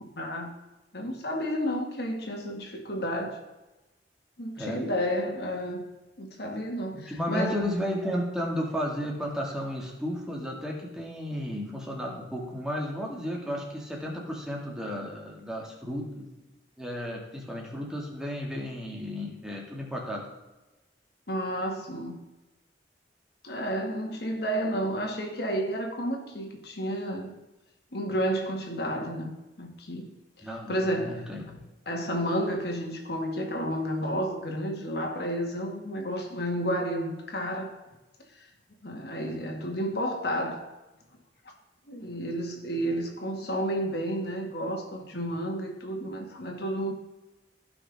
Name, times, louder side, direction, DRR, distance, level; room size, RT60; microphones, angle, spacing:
voice 1, 0.2-0.5 0.9-3.4 4.4-5.8 6.2-7.7 21.3-22.2 23.4-27.3 27.9-30.1 30.4-31.3 31.9-37.7 38.4-38.5 38.8-40.7 41.9-46.9, equal, 60° left, 2.0 m, -31 dB
voice 2, 6.9-16.3 16.8-20.2 30.4-31.7, equal, 5° right, 2.1 m, -33 dB
15.5 x 6.0 x 3.6 m
head